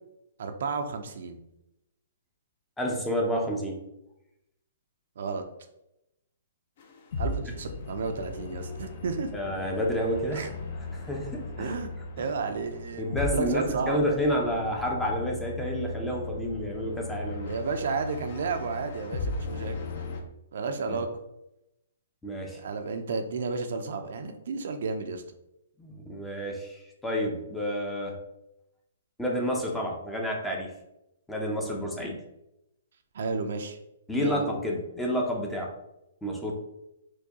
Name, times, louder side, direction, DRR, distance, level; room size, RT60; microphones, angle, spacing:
voice 1, 0.4-1.4 5.2-5.4 7.2-9.3 10.3-10.5 11.6-11.9 12.2-13.0 13.3-14.0 17.5-19.8 20.5-21.1 22.5-25.2 33.1-33.8 34.2-34.4, right 4 dB, 65° right, 6 dB, 0.5 m, -32 dB
voice 2, 2.8-3.8 9.3-10.5 10.9-11.7 12.2-12.3 13.0-17.5 20.9-21.0 22.2-22.6 25.8-28.2 29.2-30.7 31.3-32.2 34.1-35.7 36.2-36.5, equal, 5° left, -1 dB, 0.5 m, -30 dB
sound 1, 6.8-20.2, left 3 dB, 50° left, 0.7 m, -37 dB
4.5 x 2.2 x 2.8 m, 0.86 s
hypercardioid pair, 155°, 0 cm